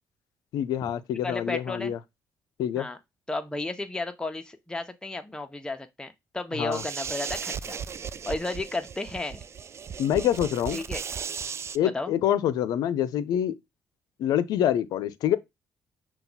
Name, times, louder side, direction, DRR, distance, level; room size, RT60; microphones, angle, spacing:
voice 1, 0.5-2.0 2.6-2.9 6.6-6.8 10.0-10.8 11.7-13.5 14.2-15.4, left 10 dB, 75° left, 0.4 m, -26 dB
voice 2, 1.2-1.9 2.8-3.0 3.3-7.8 8.3-9.4 10.7-11.0 11.9-12.1, left 2 dB, 10° left, 0.7 m, -33 dB
sound 1, 6.7-11.8, right 7 dB, 40° right, 0.3 m, -36 dB
5.6 x 2.3 x 3.9 m
supercardioid pair, 60°, 7 cm